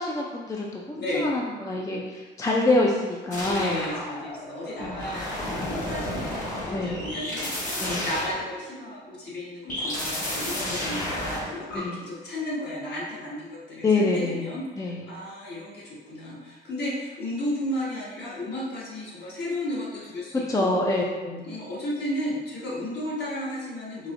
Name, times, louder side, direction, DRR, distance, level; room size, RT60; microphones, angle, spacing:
voice 1, 0.0-3.8 4.8-5.3 6.7-7.1 7.8-8.1 10.8-11.1 11.7-12.1 13.8-15.0 20.5-21.4, left 2 dB, 15° left, -2 dB, 0.4 m, -26 dB
voice 2, 0.9-1.3 3.5-20.8 21.4-24.1, left 1 dB, 55° left, -6 dB, 1.4 m, -33 dB
sound 1, 3.3-8.9 9.7-11.8, left 1 dB, 40° left, 1.5 m, -32 dB
4.7 x 2.7 x 2.5 m, 1.3 s
cardioid pair, 90°, 20 cm